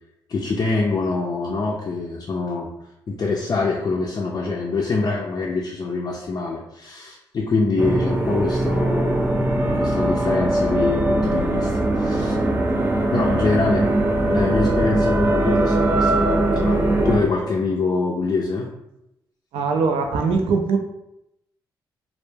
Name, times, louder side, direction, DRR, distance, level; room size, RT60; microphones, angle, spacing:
voice 1, 0.3-2.7 3.1-9.2 9.7-12.4 13.1-13.9 14.2-18.7, left 3 dB, 45° left, -2 dB, 0.4 m, -24 dB
sound 1, 7.8-17.2, right 1 dB, 25° right, 0.5 m, -20 dB
voice 2, 19.5-20.8, right 4 dB, 80° right, 4 dB, 0.4 m, -21 dB
2.1 x 2.1 x 3.2 m, 0.86 s
supercardioid pair, 55°, 9 cm